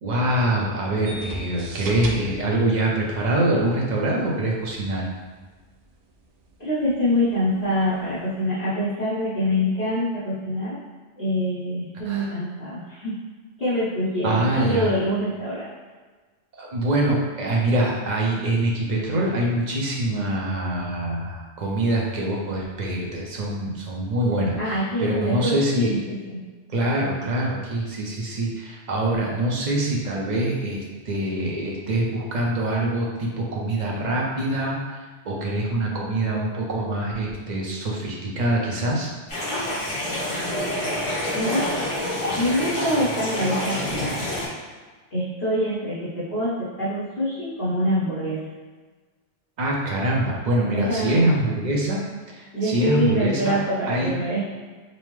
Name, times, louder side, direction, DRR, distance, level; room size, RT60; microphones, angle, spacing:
voice 1, 0.0-5.1 12.1-12.3 14.2-14.9 16.6-25.9 26.7-35.0 35.2-39.1 49.6-52.0 52.4-53.6 53.9-54.1, right 1 dB, 45° right, -3 dB, 0.7 m, -24 dB
sound 1, 1.0-8.4, equal, 75° right, 0.9 m, -40 dB
voice 2, 6.6-10.8 11.2-13.1 13.6-15.7 24.6-26.4 41.3-41.8 42.3-44.3 45.1-48.4 50.7-51.3 52.5-54.4, equal, 45° left, -14 dB, 1.3 m, -25 dB
sound 2, 39.3-44.5, left 1 dB, 75° left, 1.8 m, -27 dB
5.4 x 2.1 x 3.1 m, 1.4 s
omnidirectional pair, 1.2 m